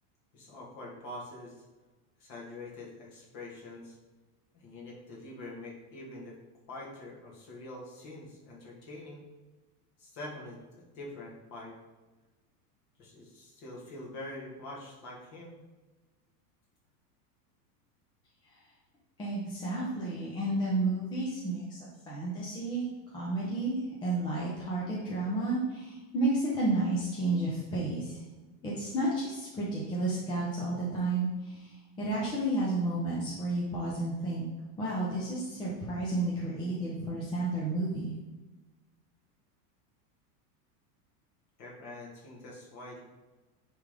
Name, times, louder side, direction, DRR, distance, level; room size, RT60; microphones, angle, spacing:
voice 1, 0.3-1.6 2.2-4.0 4.5-6.4 6.7-9.2 10.0-11.7 13.0-15.6 41.6-43.0, left 2 dB, 35° left, -3 dB, 1.9 m, -45 dB
voice 2, 19.2-22.9 23.1-28.2 28.6-34.5 34.8-38.1, right 2 dB, 10° left, -6 dB, 0.6 m, -31 dB
9.8 x 3.5 x 3.7 m, 1.2 s
supercardioid pair, 165°, 48 cm